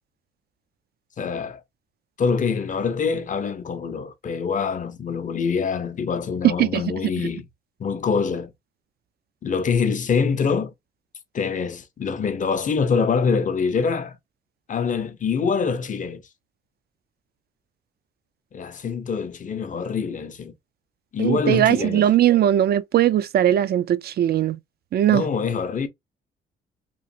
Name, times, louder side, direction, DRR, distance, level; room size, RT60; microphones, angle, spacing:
voice 1, 1.2-1.6 2.2-7.5 7.8-8.5 9.4-10.7 11.3-14.2 14.7-16.2 18.5-20.5 21.1-22.1 25.1-25.9, left 5 dB, 40° left, 0.6 m, -25 dB
voice 2, 21.2-24.6 24.9-25.2, right 11 dB, 55° right, 0.4 m, -19 dB
3.0 x 2.4 x 2.6 m
cardioid pair, 90°, 20 cm